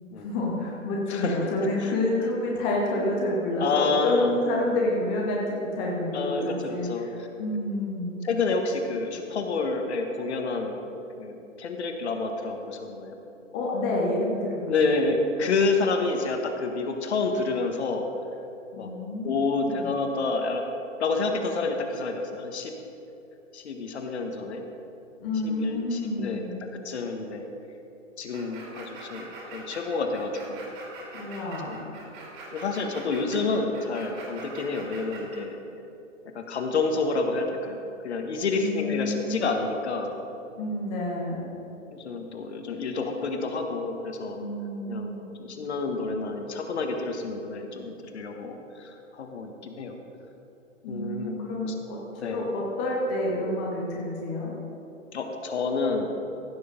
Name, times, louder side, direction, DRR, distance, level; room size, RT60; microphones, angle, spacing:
voice 1, 0.2-8.2 13.5-14.9 18.7-19.9 25.2-26.5 31.1-31.8 38.6-39.5 40.6-41.5 44.3-45.2 50.8-54.5, left 1 dB, 10° left, -3 dB, 0.4 m, -29 dB
voice 2, 1.1-1.5 1.8-1.9 3.6-4.4 6.1-7.3 8.2-10.8 11.2-13.1 14.7-18.1 18.8-18.9 19.2-20.6 21.0-22.7 23.5-24.6 25.4-26.4 26.8-27.5 28.2-30.7 31.7-31.9 32.5-35.6 36.3-40.1 41.9-44.4 44.9-45.1 45.4-50.0 50.9-51.4 51.6-51.8 52.2-52.5 55.1-56.1, left 3 dB, 55° left, 4 dB, 1.5 m, -29 dB
sound 1, 28.3-35.4, right 3 dB, 40° right, 2.8 m, -43 dB
15.0 x 6.9 x 5.3 m, 3.0 s
figure-of-eight pair, 120°, 39 cm